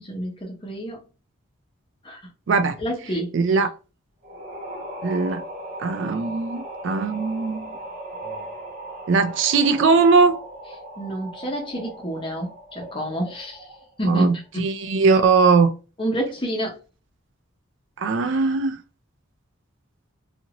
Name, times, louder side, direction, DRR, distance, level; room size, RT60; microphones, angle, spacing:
voice 1, 0.0-1.0 2.0-2.2 2.8-3.3 11.0-13.7 14.0-14.3 16.0-16.7, right 1 dB, 25° left, 0.9 m, -28 dB
voice 2, 2.5-2.8 3.3-3.7 5.0-5.4 5.8-7.7 9.1-10.4 14.1-15.7 18.0-18.8, right 4 dB, 60° right, 0.3 m, -20 dB
sound 1, 4.2-14.0, right 1 dB, 40° right, 0.9 m, -38 dB
2.7 x 2.5 x 2.8 m
head